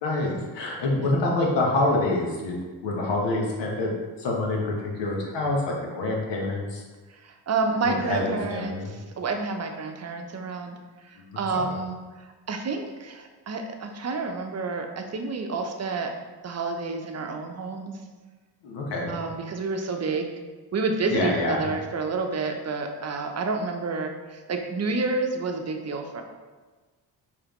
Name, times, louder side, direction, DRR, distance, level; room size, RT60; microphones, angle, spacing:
voice 1, 0.0-2.6 2.8-3.9 4.2-6.8 7.8-8.9 11.1-11.7 18.6-19.1 21.1-21.7, left 2 dB, 75° left, -1 dB, 1.2 m, -26 dB
voice 2, 7.1-16.1 16.4-18.0 19.1-20.3 20.7-26.2, right 3 dB, 35° right, 4 dB, 0.7 m, -29 dB
4.8 x 3.5 x 3.0 m, 1.3 s
supercardioid pair, 60°, 44 cm